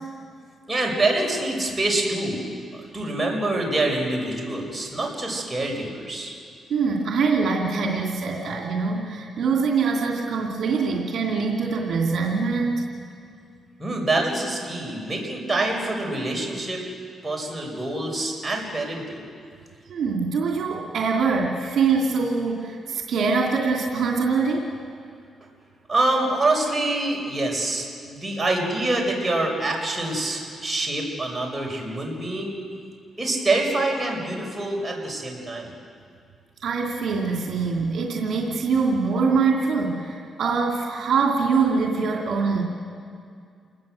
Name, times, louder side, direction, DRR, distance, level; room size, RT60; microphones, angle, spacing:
voice 1, 0.7-2.4 2.9-6.3 13.8-16.8 17.2-19.3 25.9-32.6 33.2-35.7, right 2 dB, 20° right, 0 dB, 6.2 m, -25 dB
voice 2, 6.7-12.8 19.9-24.7 36.6-42.6, right 4 dB, 70° right, -1 dB, 3.0 m, -23 dB
28.5 x 20.0 x 7.8 m, 2.3 s
cardioid pair, 80°, 0 cm